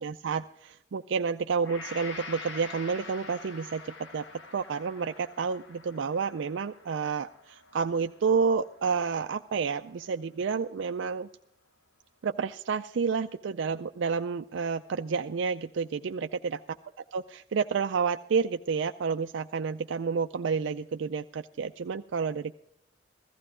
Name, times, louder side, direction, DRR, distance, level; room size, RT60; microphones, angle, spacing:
voice 1, 0.0-4.2 4.5-11.3 12.2-16.6 17.1-22.5, right 5 dB, 75° right, 7 dB, 0.4 m, -30 dB
Gong, 1.6-9.9 10.4-10.6, left 4 dB, 80° left, 1.4 m, -46 dB
15.5 x 14.5 x 3.7 m, 0.75 s
head